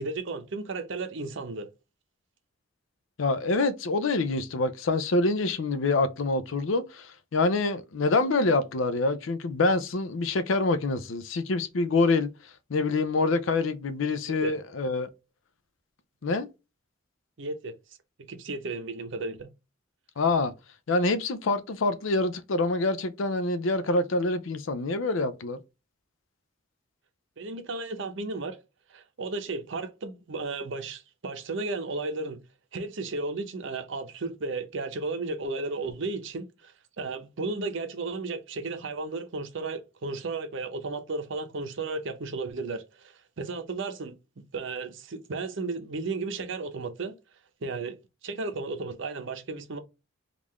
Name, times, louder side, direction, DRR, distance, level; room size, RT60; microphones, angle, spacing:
voice 1, 0.0-1.7 14.4-14.5 17.4-17.7 18.2-19.5 27.4-28.6 28.9-32.4 32.7-47.1 47.6-48.0 48.2-49.8, right 3 dB, 65° right, 0.6 m, -34 dB
voice 2, 3.2-12.3 12.7-15.1 16.2-16.5 20.2-20.5 20.9-25.6, left 3 dB, 70° left, 0.5 m, -26 dB
3.7 x 2.4 x 3.0 m
head